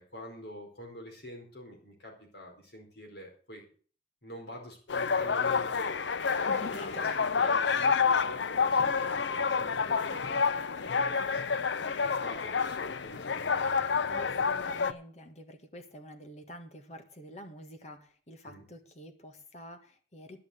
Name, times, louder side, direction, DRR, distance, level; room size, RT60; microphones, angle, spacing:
voice 1, 0.0-3.6 4.2-6.9 7.3-11.4 12.0-14.4 18.4-18.6, left 1 dB, 65° left, 2 dB, 4.5 m, -46 dB
sound 1, 4.9-14.9, left 5 dB, 80° left, 0.6 m, -29 dB
voice 2, 6.5-7.6 14.1-20.4, equal, 40° left, 6 dB, 1.6 m, -47 dB
11.5 x 6.7 x 7.9 m, 0.42 s
head